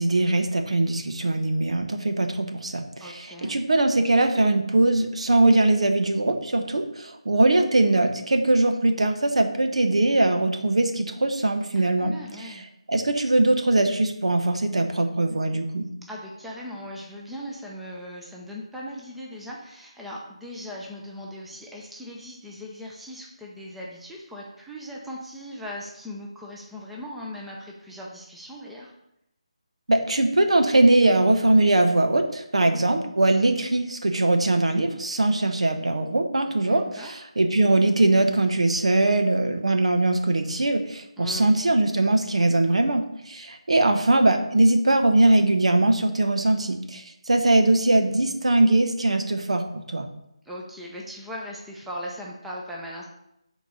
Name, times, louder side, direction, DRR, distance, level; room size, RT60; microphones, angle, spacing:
voice 1, 0.0-12.1 12.9-15.9 29.9-50.1, right 2 dB, 70° right, 6 dB, 0.9 m, -21 dB
voice 2, 3.0-3.6 12.0-12.7 16.0-28.9 36.6-37.2 41.2-41.6 50.4-53.0, equal, ahead, -3 dB, 0.7 m, -39 dB
7.4 x 4.1 x 5.2 m, 0.80 s
figure-of-eight pair, 155°, 3 cm